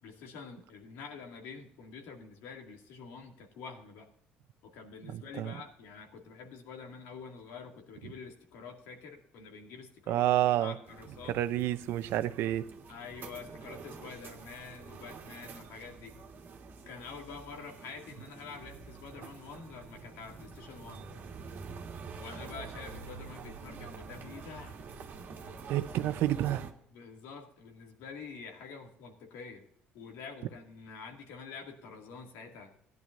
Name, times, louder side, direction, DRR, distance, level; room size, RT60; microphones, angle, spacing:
voice 1, 0.0-4.1 4.6-10.2 10.6-11.4 12.9-16.1 16.9-21.0 22.2-24.8 26.9-29.6 29.9-32.8, left 5 dB, 80° left, 2.2 m, -47 dB
voice 2, 5.1-5.5 10.1-10.7 11.3-12.7 25.7-26.7, right 13 dB, 75° right, 0.7 m, -29 dB
sound 1, 10.9-26.7, right 5 dB, 50° right, 1.6 m, -47 dB
15.5 x 10.5 x 2.6 m
cardioid pair, 95°, 4 cm